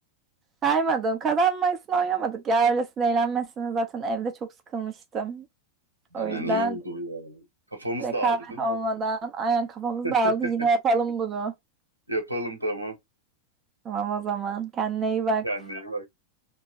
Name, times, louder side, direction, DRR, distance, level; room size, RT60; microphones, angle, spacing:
voice 1, 0.6-4.3 4.7-5.4 6.1-6.8 8.0-11.5 13.8-15.4, right 4 dB, 25° right, 0.7 m, -26 dB
voice 2, 6.2-7.4 7.7-8.8 10.0-10.3 12.1-13.0 15.4-16.1, right 1 dB, 85° right, 1.1 m, -32 dB
3.1 x 2.2 x 2.8 m
figure-of-eight pair, 90°, 0 cm